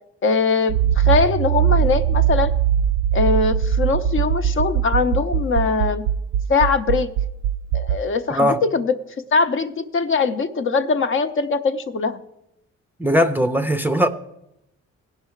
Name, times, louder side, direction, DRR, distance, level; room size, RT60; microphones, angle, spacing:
voice 1, 0.2-2.5 3.1-6.0 6.5-7.1 7.7-8.9 9.3-12.2, left 4 dB, 45° left, 0.7 m, -21 dB
Accelerating revving vroom, 0.7-8.0, right 9 dB, 80° right, 0.5 m, -20 dB
voice 2, 8.3-8.6 13.0-14.1, equal, 5° right, 0.5 m, -19 dB
16.5 x 5.7 x 4.5 m
cardioid pair, 90°, 30 cm